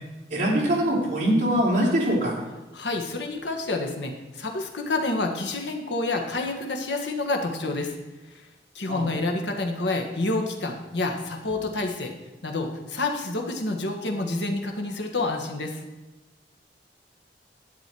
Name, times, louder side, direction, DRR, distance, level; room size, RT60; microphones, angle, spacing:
voice 1, 0.3-2.3 8.9-9.1, equal, 45° right, -4 dB, 3.3 m, -23 dB
voice 2, 2.7-8.0 8.3-8.4 8.7-12.1 12.4-15.8, left 2 dB, 75° left, 3 dB, 1.5 m, -28 dB
11.5 x 9.2 x 4.6 m, 1.1 s
head